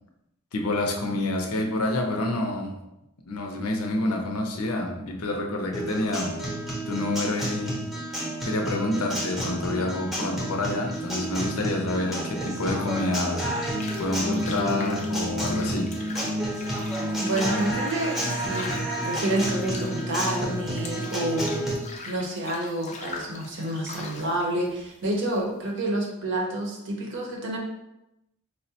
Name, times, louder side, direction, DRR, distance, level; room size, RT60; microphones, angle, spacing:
voice 1, 0.5-2.8 3.3-6.4 6.9-7.8 8.4-16.0, left 2 dB, 80° left, 2 dB, 0.6 m, -28 dB
Guitar, 5.7-21.7, right 1 dB, ahead, 0.7 m, -30 dB
sound 1, 10.9-25.7, left 3 dB, 30° left, 0.4 m, -42 dB
voice 2, 17.2-21.6 22.1-27.6, right 1 dB, 55° right, 0 dB, 0.7 m, -29 dB
4.5 x 2.1 x 2.8 m, 0.88 s
head